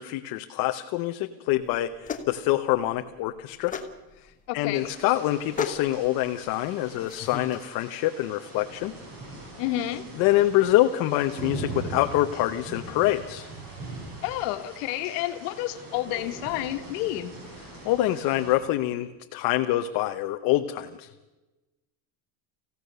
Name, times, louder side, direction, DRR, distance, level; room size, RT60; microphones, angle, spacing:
voice 1, 0.0-3.8 4.5-9.0 10.2-13.5 17.8-21.1, left 15 dB, 45° left, 7 dB, 0.8 m, -25 dB
sound 1, 1.5-7.6, left 7 dB, 15° left, 1.1 m, -37 dB
voice 2, 4.5-4.9 9.6-10.0 14.2-17.3, left 14 dB, 65° left, 8 dB, 1.7 m, -30 dB
sound 2, 4.7-18.5, right 2 dB, 40° right, 7.1 m, -41 dB
25.5 x 16.0 x 6.8 m, 1.1 s
cardioid pair, 170°, 50 cm